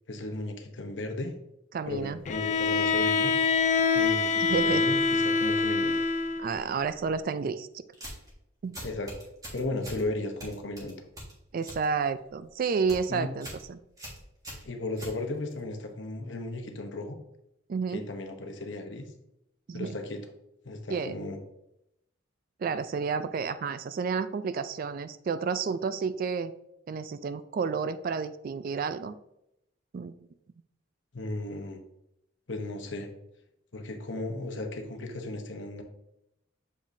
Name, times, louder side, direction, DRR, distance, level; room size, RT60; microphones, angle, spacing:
voice 1, 0.1-1.3 1.9-3.3 3.9-6.0 8.8-9.1 9.5-11.0 13.1-13.3 14.6-17.2 17.9-19.0 19.7-20.2 20.6-21.4 31.1-31.8 32.5-33.1 33.7-35.8, left 2 dB, 65° left, 5 dB, 0.9 m, -35 dB
voice 2, 1.7-2.2 4.5-4.8 6.4-7.8 8.6-8.8 11.5-13.8 17.7-18.1 19.7-19.9 20.9-21.1 22.6-26.5 26.9-29.1 29.9-30.1, right 5 dB, 45° right, 13 dB, 0.3 m, -30 dB
Bowed string instrument, 2.2-6.5, left 4 dB, 35° left, 0.4 m, -25 dB
sound 1, 7.9-8.3 8.7-10.0 10.4-11.8 12.2-12.5 12.8-13.1 13.4-13.6 14.0-15.6, equal, 20° right, 1.6 m, -42 dB
6.9 x 5.1 x 2.6 m, 0.83 s
head